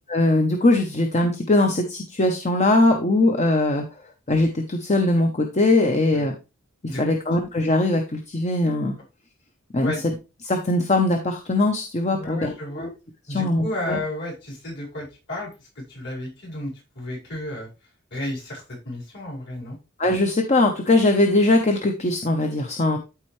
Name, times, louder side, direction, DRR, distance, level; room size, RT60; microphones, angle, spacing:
voice 1, 0.1-3.8 4.3-6.3 6.8-9.0 9.7-9.9 10.4-12.9 13.3-14.0 20.0-23.0, left 2 dB, 35° left, 3 dB, 0.9 m, -21 dB
voice 2, 12.1-12.9 13.3-17.7 18.1-19.8 22.9-23.0, left 1 dB, 55° left, -3 dB, 5.0 m, -33 dB
13.0 x 4.4 x 3.2 m, 0.29 s
head